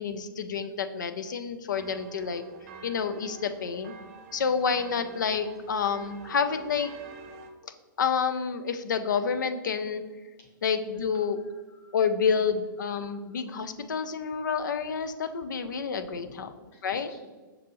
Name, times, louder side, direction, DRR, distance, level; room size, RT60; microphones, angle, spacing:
voice 1, 0.0-2.4 2.8-4.0 4.3-6.9 8.0-10.0 10.6-11.4 11.9-16.5 16.8-17.1, left 6 dB, 60° left, 10 dB, 0.4 m, -29 dB
sound 1, 1.7-7.5, right 4 dB, 45° right, 0.4 m, -47 dB
voice 2, 11.1-12.0 12.9-13.1 16.1-16.5 16.7-17.2, left 2 dB, 25° left, 0 dB, 0.9 m, -57 dB
5.8 x 2.5 x 3.0 m, 1.3 s
figure-of-eight pair, 110°, 11 cm